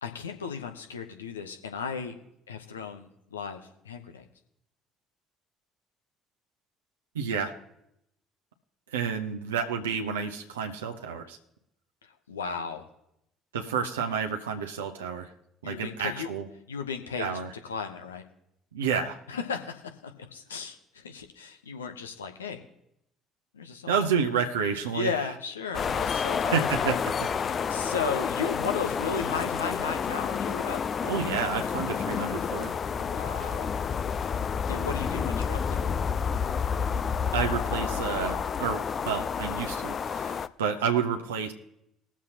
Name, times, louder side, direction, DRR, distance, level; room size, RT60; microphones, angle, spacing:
voice 1, 0.0-2.1 2.5-4.2 12.3-12.9 15.6-16.3 16.7-18.2 19.3-22.6 23.5-23.9 24.9-26.9 27.4-30.8 33.0-33.7 34.7-35.9, left 5 dB, 80° left, 5 dB, 0.9 m, -35 dB
voice 2, 7.1-7.5 8.9-11.4 13.5-15.3 15.6-16.5 17.2-17.5 18.7-19.2 23.9-25.1 26.5-27.3 31.0-32.8 37.3-41.5, right 6 dB, 75° right, 4 dB, 0.8 m, -30 dB
sound 1, 25.7-40.5, left 6 dB, 40° left, 0.4 m, -29 dB
20.5 x 7.3 x 2.9 m, 0.80 s
figure-of-eight pair, 55°, 0 cm